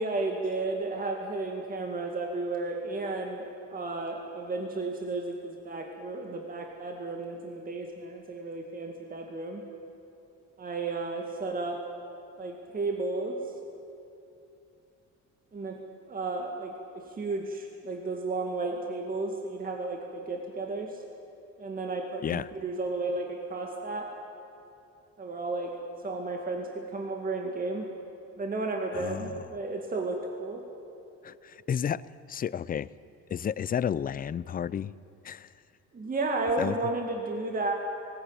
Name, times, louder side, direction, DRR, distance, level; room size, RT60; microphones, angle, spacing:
voice 1, 0.0-9.6 10.6-11.8 12.4-13.4 15.5-15.8 16.1-21.0 21.6-24.1 25.2-25.7 26.0-27.9 28.4-30.6 35.9-37.7, right 3 dB, 30° right, 1 dB, 2.2 m, -33 dB
voice 2, 28.9-29.4 31.2-32.9 33.3-34.9 35.2-35.5 36.6-36.8, left 8 dB, 30° left, 20 dB, 0.5 m, -32 dB
19.0 x 18.5 x 9.0 m, 2.7 s
cardioid pair, 120°, 29 cm